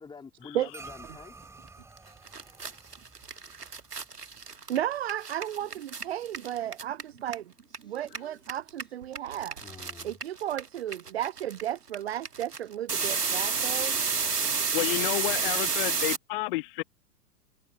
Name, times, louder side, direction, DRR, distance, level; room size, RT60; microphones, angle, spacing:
voice 1, 0.0-1.3 7.8-8.1 8.8-9.0 9.6-10.1, left 5 dB, 10° left, 3.7 m, -48 dB
sound 1, 0.7-5.3, right 3 dB, 5° right, 3.8 m, -51 dB
sound 2, 2.0-2.1 2.3-7.8 8.0-16.2, right 5 dB, 80° right, 1.5 m, -30 dB
voice 2, 4.7-7.5 7.8-9.6 10.0-14.0, right 11 dB, 45° right, 0.4 m, -33 dB
voice 3, 14.7-16.8, left 21 dB, 35° left, 1.2 m, -30 dB
figure-of-eight pair, 110°, 47 cm